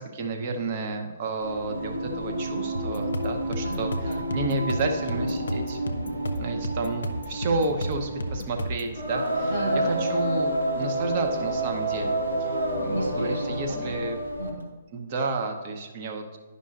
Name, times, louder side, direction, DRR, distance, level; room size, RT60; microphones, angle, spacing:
voice 1, 0.0-3.9 4.3-5.8 6.4-9.5 10.0-14.2 14.9-16.4, right 3 dB, 40° right, 3 dB, 0.9 m, -31 dB
Singing, 1.4-14.6, right 1 dB, 85° right, 1.6 m, -30 dB
sound 1, 2.7-8.9, equal, 70° left, 0.6 m, -33 dB
voice 2, 3.6-4.3 9.5-10.0 12.9-14.1 14.4-14.7, right 2 dB, 60° right, -4 dB, 2.1 m, -34 dB
11.0 x 5.4 x 2.5 m, 1.3 s
figure-of-eight pair, 125°, 0 cm